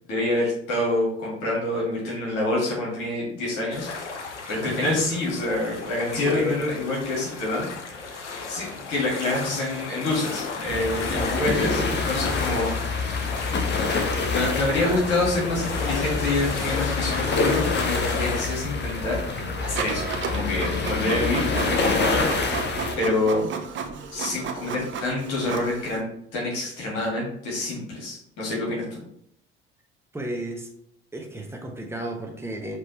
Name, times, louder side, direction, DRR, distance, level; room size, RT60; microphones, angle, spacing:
voice 1, 0.1-3.9 4.5-12.7 14.3-21.4 21.7-22.3 23.0-23.5 24.1-26.1 26.3-29.0, left 2 dB, 60° left, -4 dB, 1.7 m, -27 dB
sound 1, 3.7-18.4, left 4 dB, 85° left, 0.5 m, -35 dB
voice 2, 4.4-5.2 5.9-6.6 11.1-12.0 12.4-12.5 14.8-15.0 30.1-30.7 31.1-32.8, right 1 dB, 5° right, 2 dB, 0.9 m, -33 dB
sound 2, 10.7-22.9, left 4 dB, 30° left, 0.8 m, -27 dB
Printer, 19.8-26.0, right 6 dB, 35° right, 0.6 m, -33 dB
4.9 x 3.1 x 3.0 m, 0.69 s
figure-of-eight pair, 55°, 34 cm